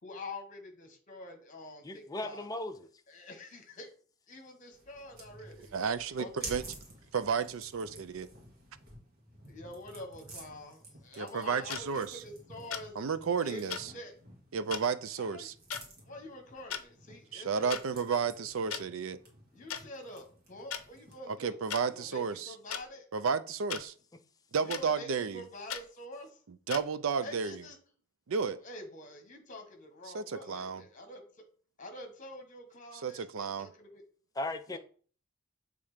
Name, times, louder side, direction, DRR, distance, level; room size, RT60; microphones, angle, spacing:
voice 1, 0.0-2.5 3.1-3.9 4.3-5.7 6.2-6.5 9.5-12.9 13.4-14.1 15.2-15.5 16.0-18.7 19.5-23.0 24.6-26.4 27.2-27.8 28.4-31.3 31.8-34.0 34.7-34.8, left 1 dB, 35° left, 1.4 m, -47 dB
voice 2, 1.8-2.9 34.4-34.8, left 2 dB, 15° left, 0.4 m, -37 dB
sound 1, 4.7-21.3, right 2 dB, 45° right, 2.0 m, -51 dB
voice 3, 5.7-6.6 7.1-8.3 11.2-12.1 13.0-13.9 14.5-15.5 17.3-19.2 21.3-22.5 23.1-23.9 24.5-25.4 26.7-27.6 28.3-28.6 30.1-30.8 33.0-33.7, right 6 dB, 65° right, 0.5 m, -32 dB
sound 2, 11.7-11.8 12.7-12.9 13.7-13.8 14.7-14.8 15.7-15.8 16.6-16.8 17.7-17.8 18.7-18.8 19.7-19.8 20.7-20.8 21.7-21.8 22.7-22.8 23.7-23.8 24.7-24.8 25.7-25.8 26.7-26.8, left 8 dB, 75° left, 0.6 m, -37 dB
7.1 x 3.5 x 5.0 m
head